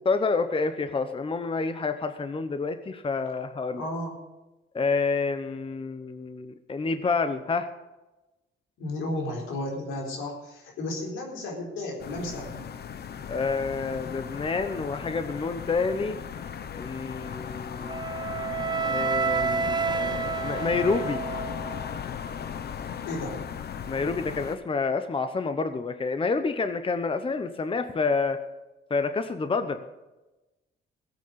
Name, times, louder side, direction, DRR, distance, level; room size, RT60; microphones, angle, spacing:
voice 1, 0.1-3.8 4.7-7.7 13.3-16.2 16.8-18.0 18.8-21.2 23.9-28.4 28.9-29.8, left 4 dB, 25° left, 9 dB, 0.9 m, -28 dB
voice 2, 3.8-4.1 8.8-12.6 23.1-23.4, left 1 dB, 85° left, 0 dB, 4.1 m, -33 dB
sound 1, 12.0-24.6, left 7 dB, 55° left, 1.0 m, -36 dB
Wind instrument woodwind instrument, 17.9-21.9, right 5 dB, 20° right, 0.6 m, -29 dB
16.0 x 8.4 x 6.8 m, 1.1 s
cardioid pair, 90°, 20 cm